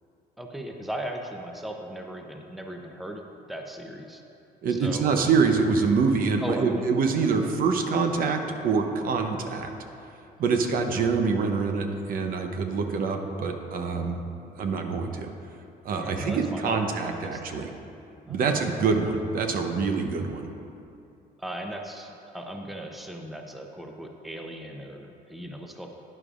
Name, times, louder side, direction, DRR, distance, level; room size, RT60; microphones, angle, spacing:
voice 1, 0.4-4.2 4.7-5.1 6.4-7.5 10.4-10.8 15.9-17.7 18.2-18.6 21.4-25.9, right 1 dB, ahead, 2 dB, 0.7 m, -38 dB
voice 2, 4.6-9.7 10.4-14.2 14.6-15.3 15.8-17.7 18.3-20.5, right 5 dB, 55° right, 5 dB, 0.8 m, -25 dB
12.0 x 9.8 x 2.5 m, 2.7 s
cardioid pair, 110°, 17 cm